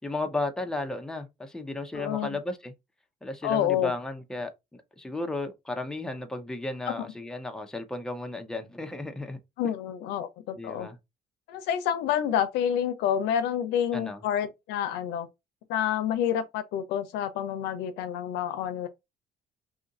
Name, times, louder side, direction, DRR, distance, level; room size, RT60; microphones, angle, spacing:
voice 1, 0.0-2.7 3.2-4.5 5.0-9.4 9.6-9.7 10.6-11.0 13.9-14.2, left 2 dB, 5° left, 0.5 m, -34 dB
voice 2, 1.9-2.4 3.4-3.9 9.6-10.9 11.5-15.3 15.7-18.9, left 9 dB, 90° left, 0.6 m, -28 dB
2.7 x 2.5 x 3.8 m
cardioid pair, 110°, 17 cm